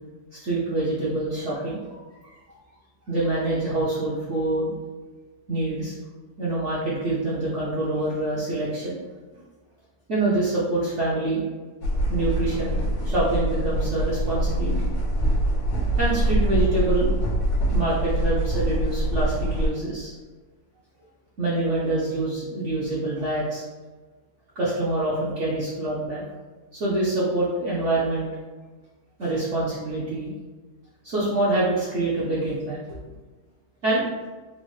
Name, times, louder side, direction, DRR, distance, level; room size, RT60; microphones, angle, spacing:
voice 1, 0.3-2.0 3.1-4.7 5.5-5.9 6.4-9.0 9.3-9.4 10.1-11.4 12.1-14.9 16.0-17.1 17.7-20.1 21.4-23.6 24.6-26.2 26.7-28.3 29.2-30.3 31.0-33.0 33.8-34.1, right 2 dB, 60° right, -7 dB, 0.7 m, -26 dB
sound 1, 11.8-19.7, right 1 dB, 70° left, 1.1 m, -24 dB
4.1 x 2.0 x 3.1 m, 1.3 s
omnidirectional pair, 2.0 m